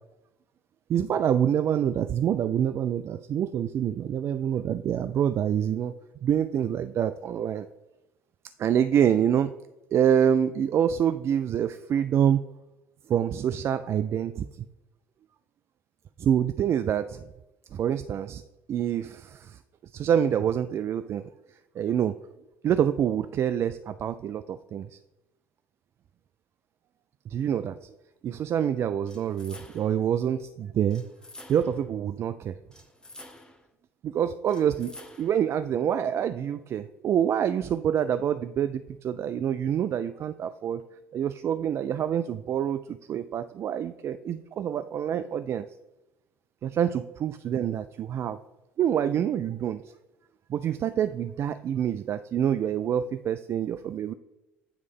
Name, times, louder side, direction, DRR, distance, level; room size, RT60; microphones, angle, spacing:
voice 1, 0.9-5.9 6.2-7.7 8.6-9.5 9.9-12.4 13.1-14.6 16.2-17.3 17.7-18.4 18.7-19.6 19.9-21.2 21.8-22.2 22.6-25.0 27.3-27.9 28.2-31.0 31.5-32.6 34.0-40.8 41.1-45.7 46.6-48.4 48.8-49.8 50.5-54.1, right 9 dB, 40° right, 11 dB, 0.3 m, -26 dB
sound 1, 29.1-30.0 30.9-31.9 32.7-33.7 34.5-35.5, left 1 dB, 10° left, 1.0 m, -49 dB
9.3 x 3.2 x 5.3 m, 0.99 s
figure-of-eight pair, 60°, 7 cm